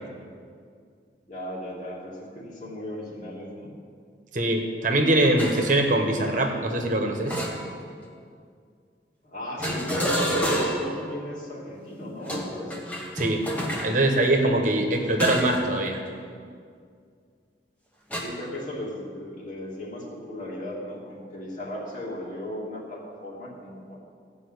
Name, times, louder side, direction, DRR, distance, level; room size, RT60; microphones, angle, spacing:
voice 1, 1.2-3.7 9.2-12.7 18.2-24.0, left 1 dB, 45° left, -4 dB, 2.8 m, -36 dB
voice 2, 4.3-7.4 13.1-13.4 13.8-16.0, right 1 dB, 45° right, 3 dB, 1.3 m, -23 dB
sound 1, 5.4-5.7 7.3-8.0 9.6-11.0 12.2-13.9 15.2-15.7 16.0-16.3 18.1-18.2, equal, 10° left, 1.5 m, -28 dB
15.5 x 5.5 x 8.2 m, 2.2 s
head